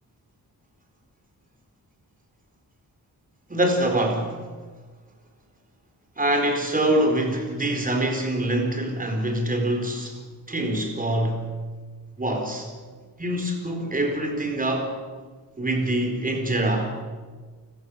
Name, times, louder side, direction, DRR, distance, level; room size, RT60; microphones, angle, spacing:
voice 1, 3.5-4.4 6.2-10.2 10.5-11.5 12.2-12.7 13.2-14.9 15.6-16.9, right 1 dB, 20° right, 3 dB, 4.3 m, -24 dB
29.0 x 15.0 x 8.5 m, 1.5 s
wide cardioid pair, 160°, 38 cm